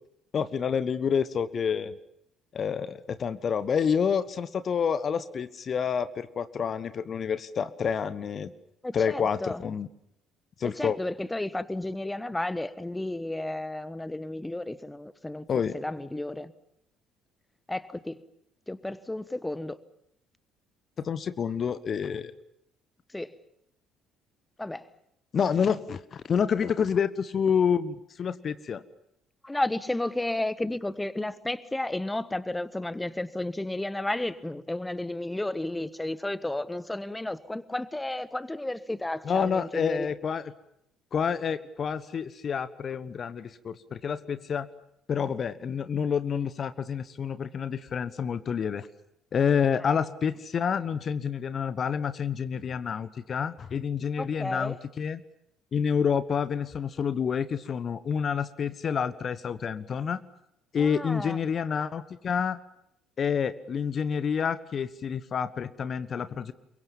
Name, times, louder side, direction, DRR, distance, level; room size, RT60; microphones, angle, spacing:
voice 1, 0.3-1.9 2.5-8.5 8.9-9.9 10.6-11.0 15.5-15.8 21.0-22.3 25.3-28.8 39.2-40.4 41.1-44.7 45.1-48.9 49.3-55.2 55.7-60.2 60.7-62.6 63.2-66.5, left 7 dB, 40° left, 14 dB, 1.2 m, -28 dB
voice 2, 8.8-9.6 10.8-15.4 15.7-16.5 17.7-18.2 18.7-19.8 23.1-23.3 24.6-24.8 29.4-40.1 49.8-49.9 54.2-54.8 60.8-61.4, left 1 dB, 10° left, 16 dB, 1.3 m, -32 dB
28.0 x 23.5 x 7.2 m, 0.76 s
figure-of-eight pair, 50°, 0 cm